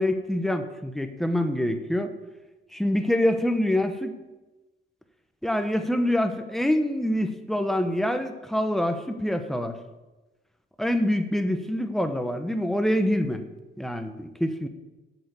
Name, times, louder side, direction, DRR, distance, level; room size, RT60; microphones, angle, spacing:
voice 1, 0.0-2.1 2.7-4.1 5.4-9.8 10.8-13.4 13.8-14.7, left 1 dB, ahead, 7 dB, 1.2 m, -25 dB
9.1 x 7.0 x 8.2 m, 1.1 s
cardioid pair, 90°, 20 cm